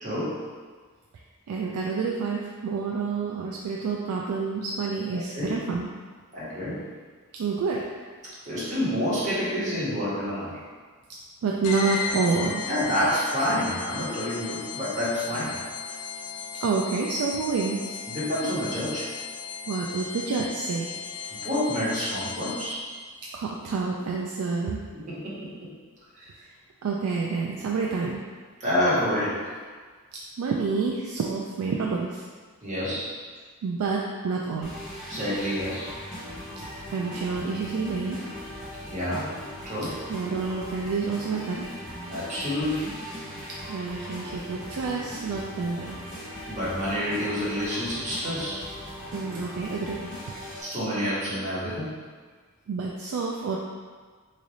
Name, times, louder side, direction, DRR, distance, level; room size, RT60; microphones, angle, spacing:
voice 1, 0.0-0.4 5.1-5.5 6.3-6.8 8.4-10.6 12.6-15.6 18.1-19.1 21.3-22.9 24.9-25.5 26.2-26.3 28.6-29.4 32.6-33.1 35.1-35.9 38.8-39.3 39.6-39.9 42.1-43.0 46.5-48.6 50.6-52.0, equal, 35° right, -9 dB, 1.2 m, -28 dB
voice 2, 1.5-5.9 7.4-7.8 11.4-12.6 16.6-18.0 19.7-21.0 23.3-24.8 26.8-28.2 30.4-32.2 33.6-34.7 36.9-38.2 40.1-41.7 43.7-46.2 49.1-50.0 52.7-53.6, right 4 dB, 80° right, -2 dB, 0.3 m, -28 dB
sound 1, 11.6-23.0, left 6 dB, 90° left, 0.4 m, -36 dB
sound 2, 34.6-50.6, left 1 dB, 5° left, 1.1 m, -39 dB
3.2 x 2.5 x 3.9 m, 1.5 s
head